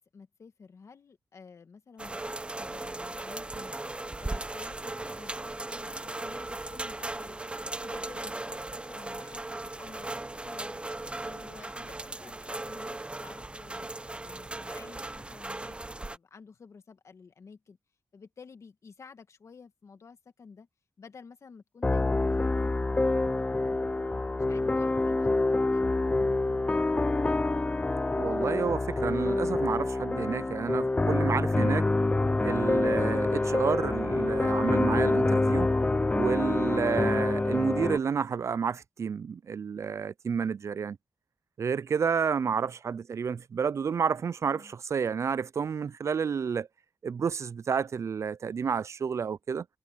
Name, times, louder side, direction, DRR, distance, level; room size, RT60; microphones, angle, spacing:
voice 1, 0.1-3.7 4.2-7.4 7.8-10.8 11.2-17.8 18.1-20.7 21.0-22.9 23.2-26.6 44.4-44.7, left 5 dB, 60° left, 2.2 m, -52 dB
sound 1, 2.0-16.2, right 2 dB, 20° right, 0.7 m, -38 dB
sound 2, 21.8-38.0, left 2 dB, 20° left, 0.5 m, -26 dB
voice 2, 28.2-31.9 32.4-35.7 36.1-41.0 41.6-46.7 47.0-49.7, right 6 dB, 55° right, 0.4 m, -30 dB
cardioid pair, 70°, 6 cm